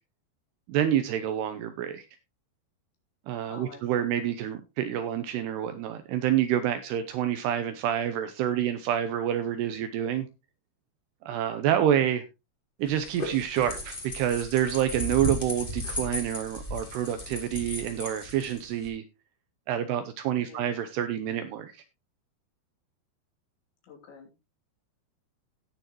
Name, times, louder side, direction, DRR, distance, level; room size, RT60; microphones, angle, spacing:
voice 1, 0.7-2.1 3.3-10.3 11.3-12.2 12.8-19.0 19.7-21.7, right 10 dB, 80° right, 9 dB, 2.6 m, -28 dB
voice 2, 3.5-4.1 20.4-20.7 23.8-24.3, left 5 dB, 75° left, 1 dB, 5.1 m, -48 dB
sound 1, 12.9-18.9, left 1 dB, 20° left, 1.7 m, -36 dB
17.5 x 6.9 x 3.0 m, 0.25 s
omnidirectional pair, 5.2 m